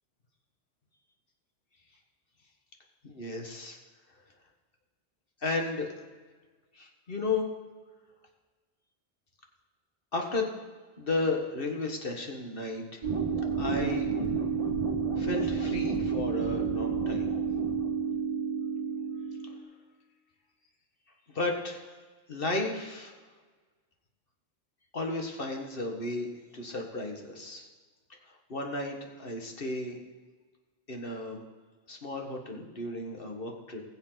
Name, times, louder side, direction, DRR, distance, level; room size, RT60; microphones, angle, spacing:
voice 1, 3.0-3.8 5.4-5.9 6.7-7.5 10.1-10.5 11.0-13.0 13.6-14.1 15.2-17.3 21.3-21.9 22.3-23.1 24.9-27.7 28.5-30.0 30.9-31.4 31.9-33.8, left 2 dB, 60° left, 2 dB, 1.8 m, -33 dB
sound 1, 13.0-19.6, right 5 dB, 30° right, 1.7 m, -30 dB
20.0 x 7.5 x 4.0 m, 1.4 s
omnidirectional pair, 1.1 m